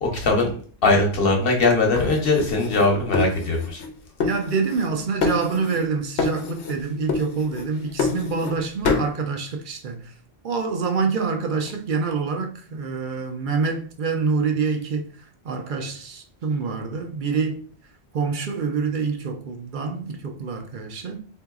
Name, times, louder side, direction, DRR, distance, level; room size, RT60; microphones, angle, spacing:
voice 1, 0.0-0.5 0.8-3.8, left 3 dB, 60° left, 1.1 m, -20 dB
sound 1, 2.0-3.9 4.2-4.9 5.2-5.9 6.2-6.8 7.1-8.6 8.8-9.1, left 4 dB, 80° left, 0.9 m, -27 dB
voice 2, 4.2-10.1 10.4-15.1 15.4-17.6 18.1-21.2, right 5 dB, 55° right, 0.6 m, -26 dB
3.7 x 2.7 x 2.3 m
omnidirectional pair, 1.1 m